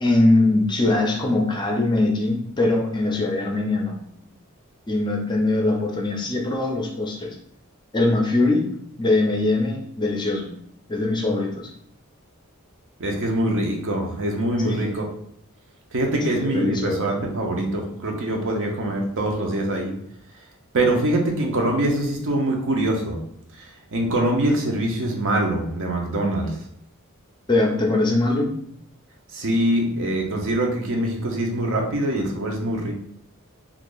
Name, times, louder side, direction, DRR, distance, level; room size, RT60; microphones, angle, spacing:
voice 1, 0.0-4.0 4.9-7.4 7.9-8.7 9.0-10.5 10.9-11.7 14.6-15.0 16.2-17.1 27.5-28.5, left 2 dB, 20° left, 1 dB, 0.5 m, -22 dB
voice 2, 13.0-15.1 15.9-19.9 20.7-23.2 23.5-26.6 29.3-32.9, right 1 dB, 60° right, 1 dB, 0.7 m, -24 dB
2.8 x 2.5 x 3.8 m, 0.68 s
head